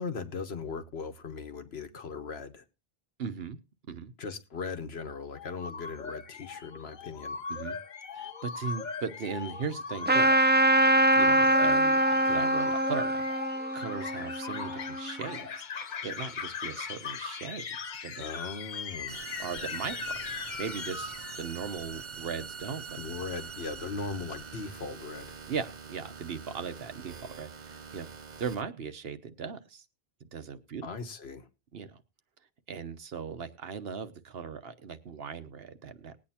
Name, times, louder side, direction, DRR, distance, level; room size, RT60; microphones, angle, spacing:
voice 1, 0.0-2.6 4.2-7.4 18.2-19.2 23.0-25.4 30.8-31.5, left 4 dB, 85° left, 1.5 m, -38 dB
voice 2, 3.2-3.6 3.9-4.1 7.5-7.8 8.1-10.3 11.1-12.0 12.3-13.5 13.7-17.8 18.0-18.2 19.4-21.1 21.4-23.0 25.5-28.1 28.4-29.8 30.3-30.9 31.7-32.0 32.7-36.2, right 6 dB, 75° right, 1.2 m, -38 dB
sound 1, 5.3-21.9, left 5 dB, 50° left, 0.8 m, -39 dB
Trumpet, 10.1-15.1, right 1 dB, 15° right, 0.3 m, -24 dB
sound 2, 19.1-28.6, right 6 dB, 50° right, 0.9 m, -44 dB
20.0 x 8.7 x 2.8 m
omnidirectional pair, 1.0 m